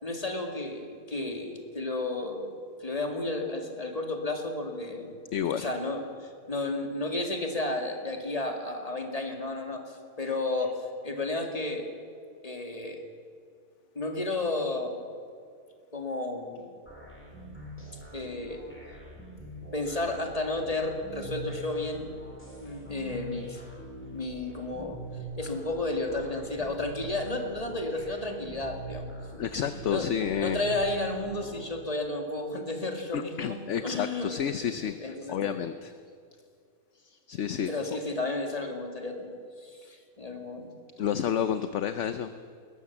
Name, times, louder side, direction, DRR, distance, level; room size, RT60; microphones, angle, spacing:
voice 1, 0.0-2.5 2.8-5.2 5.5-11.9 12.4-13.0 13.9-15.1 15.9-16.7 18.1-18.6 19.7-22.1 22.6-23.6 24.1-25.0 25.4-29.1 29.6-30.1 30.4-35.6 37.7-40.7, left 2 dB, 20° left, 3 dB, 2.4 m, -32 dB
voice 2, 5.3-5.7 29.4-30.6 33.1-35.9 37.0-37.7 41.0-42.3, left 8 dB, 55° left, 10 dB, 0.9 m, -30 dB
sound 1, 16.9-31.6, right 1 dB, 5° left, 5.1 m, -43 dB
21.0 x 18.5 x 7.2 m, 2.3 s
omnidirectional pair, 1.7 m